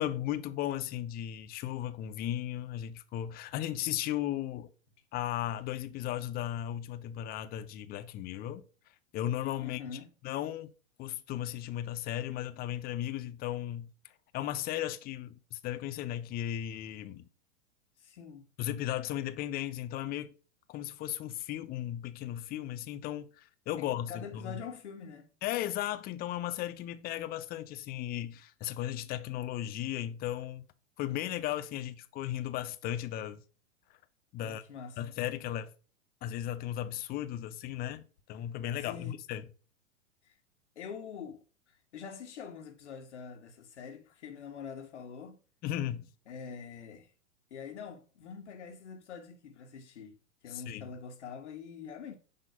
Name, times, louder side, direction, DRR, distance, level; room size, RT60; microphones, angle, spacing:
voice 1, 0.0-4.7 5.1-8.6 9.1-9.8 10.2-10.7 11.0-13.9 14.3-17.3 18.6-20.3 20.7-24.6 25.4-30.6 31.0-33.4 34.3-34.6 35.0-35.7 36.2-38.0 38.3-39.4 45.6-46.1 50.5-50.9, left 12 dB, 25° left, 0.7 m, -36 dB
voice 2, 9.6-10.1 18.0-18.5 23.8-25.3 34.4-35.0 38.8-39.2 40.2-40.3 40.8-41.4 41.9-45.4 46.3-47.1 47.5-50.2 50.4-52.1, left 6 dB, 60° left, 2.1 m, -45 dB
10.0 x 3.8 x 5.2 m
figure-of-eight pair, 100°, 38 cm